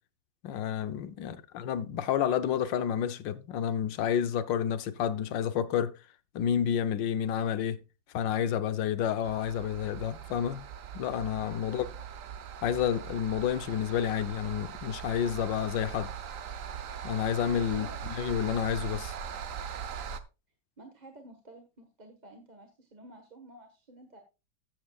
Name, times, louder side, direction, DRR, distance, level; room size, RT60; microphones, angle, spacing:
voice 1, 0.4-5.9 6.3-7.8 8.1-10.6 10.9-11.9 12.6-16.1 17.0-19.1, left 9 dB, 80° left, 1.5 m, -30 dB
sound 1, 9.2-20.2, right 8 dB, 55° right, 1.0 m, -40 dB
voice 2, 11.6-12.0 17.7-18.1 20.8-24.2, right 1 dB, 25° right, 1.3 m, -51 dB
14.0 x 8.7 x 2.3 m
omnidirectional pair, 2.0 m